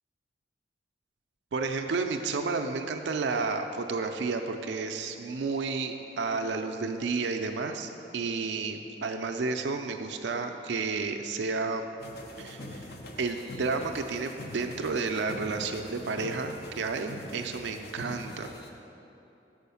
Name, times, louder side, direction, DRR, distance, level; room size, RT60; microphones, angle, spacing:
voice 1, 1.5-11.9 12.4-12.9 13.2-18.5, right 4 dB, 70° right, 5 dB, 0.4 m, -31 dB
sound 1, 12.0-18.7, left 1 dB, 60° left, 0.7 m, -43 dB
6.3 x 4.9 x 6.9 m, 2.9 s
head